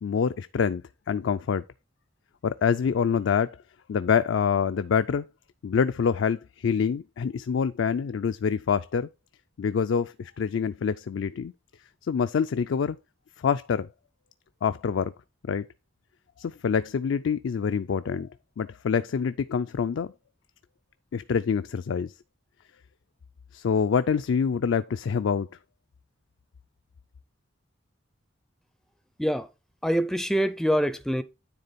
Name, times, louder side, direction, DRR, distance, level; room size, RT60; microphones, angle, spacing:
voice 1, 0.0-0.8 1.1-1.6 2.4-3.6 3.9-5.3 5.6-9.1 9.6-11.5 12.0-13.0 13.4-13.9 14.6-15.1 15.5-15.6 16.4-18.3 18.6-20.1 21.1-22.1 23.5-25.5, left 6 dB, 70° left, 0.4 m, -26 dB
voice 2, 29.8-31.2, equal, ahead, 0.4 m, -25 dB
9.8 x 3.7 x 4.1 m
head